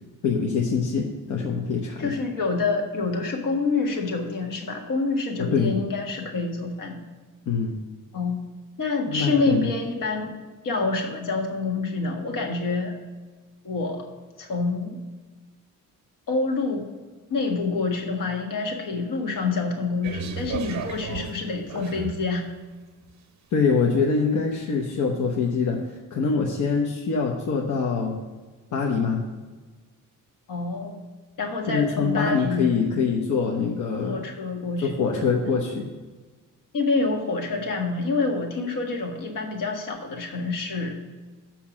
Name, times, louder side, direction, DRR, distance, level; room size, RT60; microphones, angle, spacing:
voice 1, 0.2-2.1 5.4-5.8 7.5-7.8 9.1-9.7 23.5-28.2 28.7-29.2 31.7-34.2 34.8-35.9, left 5 dB, 65° left, 0 dB, 1.0 m, -24 dB
voice 2, 2.0-7.0 8.1-8.4 8.8-10.3 10.6-13.0 13.6-14.1 14.4-15.0 16.3-16.9 17.3-22.5 30.5-31.0 31.4-32.7 34.0-35.1 36.7-41.0, left 3 dB, 80° left, 3 dB, 1.6 m, -27 dB
sound 1, 20.0-22.3 23.0-23.1, right 7 dB, 55° right, 0.8 m, -34 dB
7.5 x 5.8 x 6.1 m, 1.3 s
wide cardioid pair, 175°, 32 cm